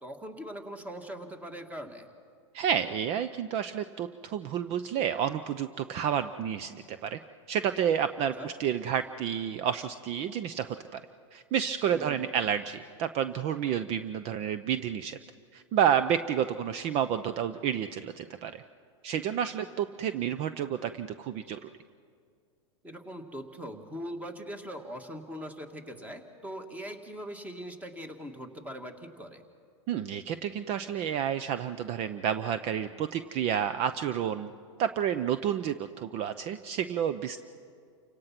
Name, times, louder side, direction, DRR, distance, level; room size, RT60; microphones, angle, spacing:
voice 1, 0.0-2.1 8.4-8.5 11.9-12.4 22.8-29.4, equal, 10° right, 7 dB, 1.9 m, -41 dB
voice 2, 2.5-7.2 7.5-11.0 11.3-15.2 15.5-18.6 19.0-21.7 29.9-34.5 34.8-37.4, right 9 dB, 40° right, 12 dB, 0.7 m, -30 dB
29.0 x 17.5 x 6.0 m, 2.3 s
hypercardioid pair, 120°, 16 cm